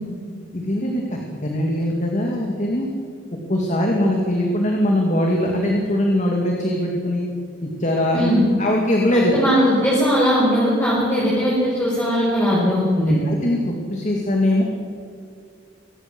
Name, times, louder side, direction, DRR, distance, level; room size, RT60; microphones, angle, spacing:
voice 1, 0.5-2.9 3.5-7.3 7.6-8.3 8.6-9.3 13.0-14.6, left 1 dB, 35° left, 0 dB, 2.5 m, -21 dB
voice 2, 9.1-13.1, equal, 10° left, -8 dB, 6.0 m, -19 dB
24.0 x 19.0 x 6.3 m, 2.3 s
head